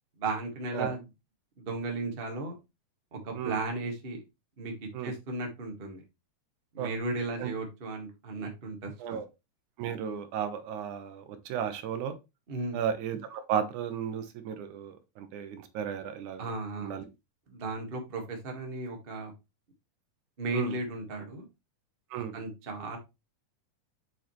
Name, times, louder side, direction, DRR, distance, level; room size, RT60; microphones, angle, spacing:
voice 1, 0.2-1.0 1.6-2.5 3.1-4.2 4.6-4.7 5.0-6.0 6.7-9.2 12.5-12.8 16.4-17.0 17.5-19.3 20.4-21.4 22.1-23.0, right 2 dB, 30° right, 2 dB, 1.2 m, -35 dB
voice 2, 9.8-12.2 12.7-16.5 16.8-17.1 20.5-20.8 22.1-22.3, right 8 dB, 80° right, 9 dB, 2.3 m, -34 dB
7.2 x 5.6 x 3.1 m, 0.24 s
omnidirectional pair, 3.5 m